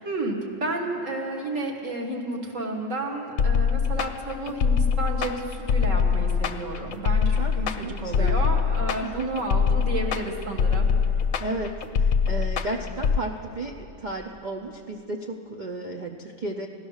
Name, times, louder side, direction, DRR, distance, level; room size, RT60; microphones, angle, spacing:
voice 1, 0.0-10.9, right 2 dB, 50° right, 0 dB, 1.8 m, -31 dB
sound 1, 3.4-13.2, left 6 dB, 60° left, 0.9 m, -23 dB
voice 2, 7.8-8.4 9.0-9.4 11.4-16.7, right 2 dB, 90° right, 3 dB, 0.4 m, -33 dB
16.5 x 11.5 x 6.4 m, 2.8 s
omnidirectional pair, 1.8 m